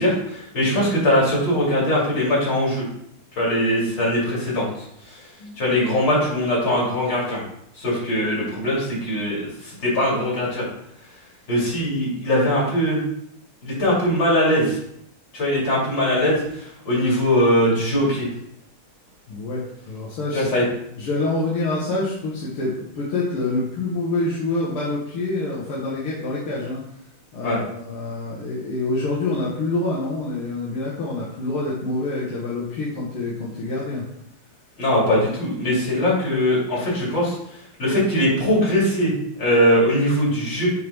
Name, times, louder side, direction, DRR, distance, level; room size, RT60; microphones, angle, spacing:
voice 1, 0.0-2.8 3.4-4.7 5.0-5.2 5.6-7.4 7.8-10.6 11.5-13.0 13.6-14.8 15.3-18.3 20.3-20.6 27.4-27.6 34.8-40.7, equal, 55° left, -6 dB, 3.6 m, -21 dB
voice 2, 19.3-20.4 20.9-26.8 27.3-34.0, left 2 dB, 80° left, -6 dB, 2.2 m, -26 dB
7.7 x 3.5 x 5.4 m, 0.74 s
omnidirectional pair, 2.3 m